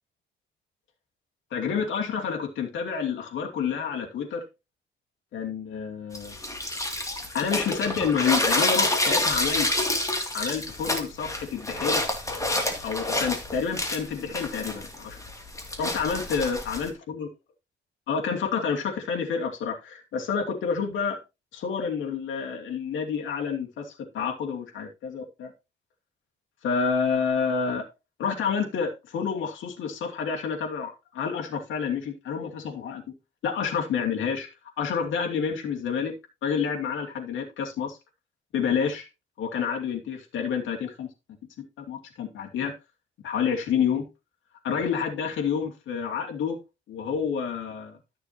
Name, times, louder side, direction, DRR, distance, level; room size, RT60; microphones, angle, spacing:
voice 1, 1.5-4.5 5.3-6.4 7.3-9.7 10.3-12.0 12.8-15.2 15.8-17.3 18.1-21.2 21.5-25.5 26.6-27.9 28.2-33.0 33.4-34.5 34.8-36.1 36.4-38.0 38.5-39.1 39.4-41.1 41.9-42.7 43.2-44.1 44.6-46.6 46.9-48.0, left 6 dB, 75° left, 2.6 m, -29 dB
sound 1, 6.1-16.9, left 1 dB, 15° left, 2.5 m, -28 dB
13.0 x 6.7 x 2.9 m
cardioid pair, 90°, 20 cm